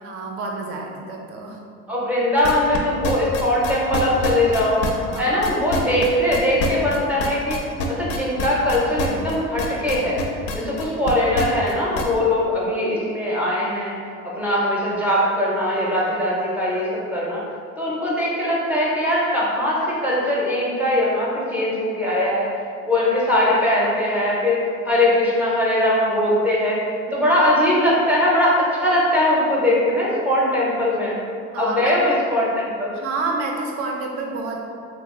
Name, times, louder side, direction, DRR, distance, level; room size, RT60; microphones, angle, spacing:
voice 1, 0.0-1.6 5.1-5.4 10.6-10.7 27.1-27.3 31.5-32.2 32.9-34.6, right 3 dB, 55° right, 1 dB, 0.5 m, -29 dB
voice 2, 1.9-4.8 5.2-7.6 7.9-10.2 10.5-13.9 14.2-17.4 17.8-22.5 22.8-24.6 24.9-26.8 27.1-31.2 31.5-32.9, left 1 dB, 5° right, -7 dB, 0.5 m, -21 dB
sound 1, 2.4-12.1, left 2 dB, 55° left, 0.4 m, -26 dB
3.0 x 2.3 x 3.5 m, 2.3 s
cardioid pair, 165°, 29 cm